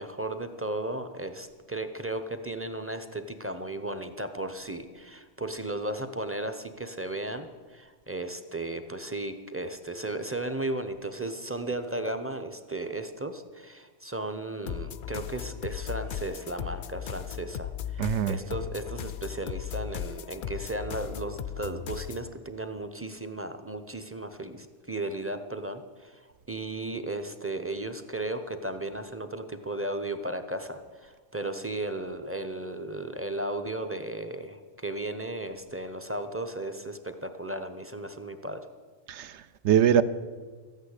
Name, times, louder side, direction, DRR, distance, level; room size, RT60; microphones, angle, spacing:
voice 1, 0.0-38.6, right 2 dB, 15° right, 8 dB, 0.5 m, -35 dB
sound 1, 14.7-22.3, left 9 dB, 60° left, 0.5 m, -37 dB
voice 2, 18.0-18.4 39.1-40.0, right 9 dB, 70° right, 14 dB, 0.8 m, -23 dB
14.0 x 9.0 x 8.1 m, 1.5 s
omnidirectional pair, 1.3 m